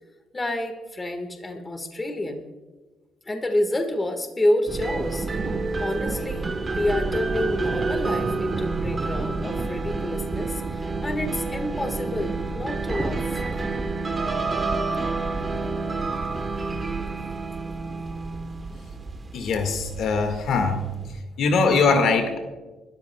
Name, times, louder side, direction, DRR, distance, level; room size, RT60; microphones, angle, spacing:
voice 1, 0.3-2.4 3.2-5.3 5.8-6.5 6.8-13.4, left 1 dB, 20° left, 5 dB, 1.6 m, -28 dB
sound 1, 4.7-21.2, right 3 dB, 25° right, 1.1 m, -29 dB
voice 2, 19.3-20.9 21.4-22.4, left 4 dB, 65° left, 6 dB, 1.8 m, -21 dB
29.5 x 13.5 x 2.3 m, 1.2 s
cardioid pair, 110°, 0 cm